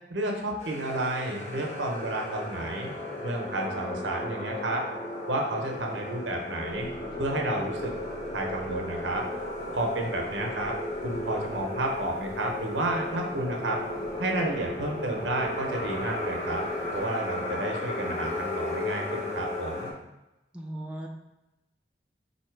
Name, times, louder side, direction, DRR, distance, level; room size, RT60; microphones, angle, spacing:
voice 1, 0.1-4.8 5.3-6.9 7.2-7.9 8.3-9.2 9.7-10.8 11.0-13.8 14.2-16.6 16.9-19.9, right 1 dB, 90° right, 1 dB, 0.9 m, -31 dB
sound 1, 0.6-19.9, left 1 dB, 40° left, 1.0 m, -35 dB
sound 2, 6.7-17.0, equal, 80° left, 1.1 m, -49 dB
voice 2, 20.5-21.1, right 1 dB, 5° right, -1 dB, 0.5 m, -37 dB
4.2 x 2.8 x 4.6 m, 0.95 s
head